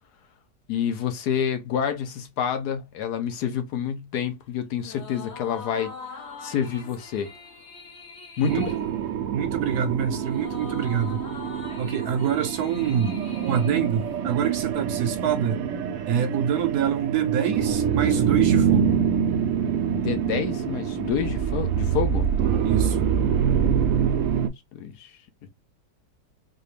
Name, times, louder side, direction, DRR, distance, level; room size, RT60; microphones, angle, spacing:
voice 1, 0.7-5.9 6.4-7.3 8.4-8.7 19.9-22.3 24.7-25.1, left 8 dB, 70° left, 1.1 m, -28 dB
sound 1, 4.8-14.5, left 4 dB, 50° left, 0.9 m, -43 dB
sound 2, 8.5-24.5, right 7 dB, 90° right, 0.7 m, -25 dB
voice 2, 9.3-11.2 11.8-13.2 13.4-15.6 16.1-19.0 22.6-23.1, right 8 dB, 70° right, 1.0 m, -26 dB
4.1 x 2.3 x 3.2 m
omnidirectional pair, 1.9 m